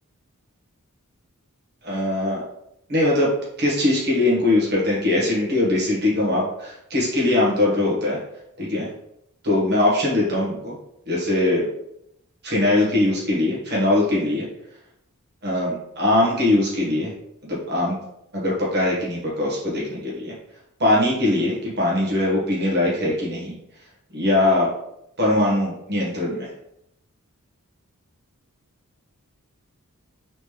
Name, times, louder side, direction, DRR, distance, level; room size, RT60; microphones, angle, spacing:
voice 1, 1.8-2.4 2.9-3.3 3.6-8.2 8.6-8.9 9.4-10.7 11.1-11.6 12.4-14.4 15.4-17.1 17.5-18.0 18.3-20.3 20.8-23.5 24.1-24.7 25.2-26.5, left 1 dB, 50° right, -5 dB, 1.3 m, -21 dB
4.0 x 3.3 x 3.2 m, 0.79 s
head